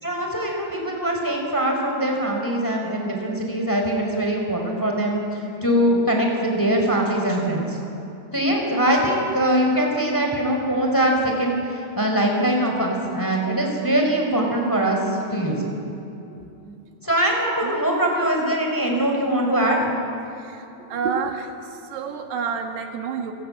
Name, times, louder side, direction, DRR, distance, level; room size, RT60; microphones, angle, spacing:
voice 1, 0.0-7.8 8.3-15.7 17.0-19.9, right 1 dB, 5° left, 1 dB, 4.0 m, -22 dB
voice 2, 20.9-21.5 21.9-23.3, right 6 dB, 75° right, 4 dB, 3.6 m, -28 dB
29.5 x 18.5 x 8.9 m, 2.8 s
omnidirectional pair, 4.7 m